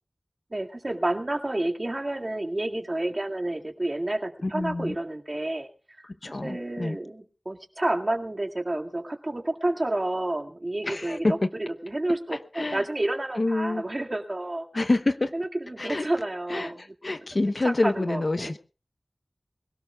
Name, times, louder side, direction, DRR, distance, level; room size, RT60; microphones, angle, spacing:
voice 1, 0.5-5.7 6.0-6.1 6.4-14.7 15.3-16.9 17.6-18.5, right 1 dB, 40° right, 3 dB, 2.1 m, -30 dB
voice 2, 4.4-5.0 6.2-7.0 10.8-11.4 12.5-12.8 13.4-13.8 14.7-15.3 15.8-16.1 16.5-18.6, left 2 dB, 55° left, 11 dB, 0.9 m, -27 dB
24.0 x 17.5 x 2.3 m, 0.34 s
wide cardioid pair, 65°, 0 cm